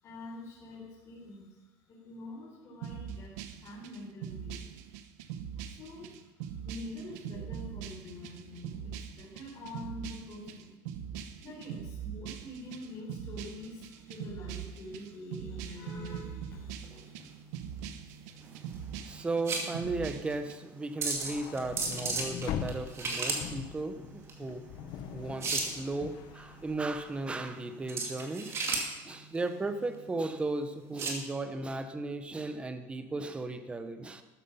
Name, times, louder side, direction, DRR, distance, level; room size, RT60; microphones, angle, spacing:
voice 1, 0.0-3.3 3.6-4.8 5.6-10.8 11.2-17.2, left 1 dB, 30° left, -5 dB, 4.2 m, -46 dB
sound 1, 2.8-20.6, right 8 dB, 80° right, 1.1 m, -42 dB
sound 2, 16.5-31.2, right 3 dB, 30° right, 2.5 m, -37 dB
voice 2, 18.4-28.6 29.0-34.2, right 2 dB, 15° right, 9 dB, 1.0 m, -36 dB
sound 3, 21.1-27.4, left 8 dB, 50° left, 1.1 m, -42 dB
13.5 x 9.8 x 5.7 m, 1.1 s
cardioid pair, 145°, 9 cm